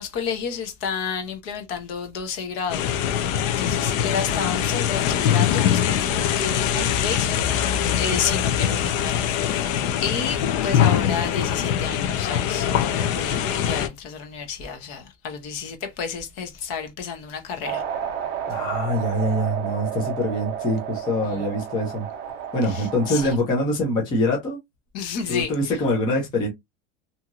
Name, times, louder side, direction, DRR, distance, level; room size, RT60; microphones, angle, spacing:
voice 1, 0.0-2.9 3.6-7.6 8.0-9.6 10.0-17.8 21.2-21.4 22.7-23.4 24.9-25.7, left 6 dB, 40° left, 0.8 m, -31 dB
sound 1, 2.7-13.9, left 9 dB, 85° left, 0.7 m, -23 dB
sound 2, 17.6-23.4, right 8 dB, 30° right, 0.6 m, -31 dB
voice 2, 18.5-22.1 22.5-24.6 25.3-26.5, left 1 dB, 10° left, 0.4 m, -24 dB
2.8 x 2.7 x 2.4 m
supercardioid pair, 175°, 38 cm